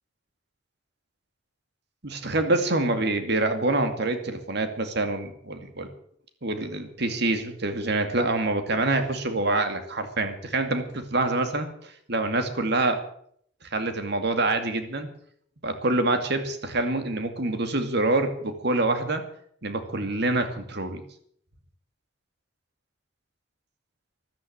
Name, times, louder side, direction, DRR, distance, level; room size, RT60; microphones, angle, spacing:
voice 1, 2.0-5.9 6.4-13.0 13.7-15.1 15.6-19.2 19.6-21.0, right 2 dB, 60° right, 7 dB, 2.4 m, -26 dB
14.0 x 12.0 x 7.8 m, 0.66 s
head